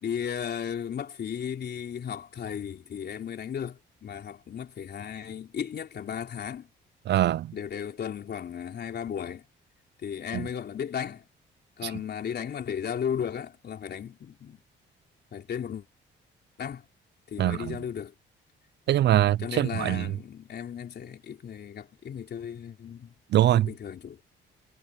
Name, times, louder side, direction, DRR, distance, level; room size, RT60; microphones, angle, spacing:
voice 1, 0.0-6.7 7.5-9.4 10.0-11.2 11.8-14.6 15.3-15.9 16.6-16.8 17.3-18.1 19.1-23.1 23.5-24.2, left 8 dB, 55° left, 3.8 m, -35 dB
voice 2, 7.1-7.5 10.3-10.5 11.8-11.9 17.4-17.8 18.9-20.1 23.3-23.7, right 13 dB, 60° right, 0.4 m, -23 dB
cardioid pair, 90°, 20 cm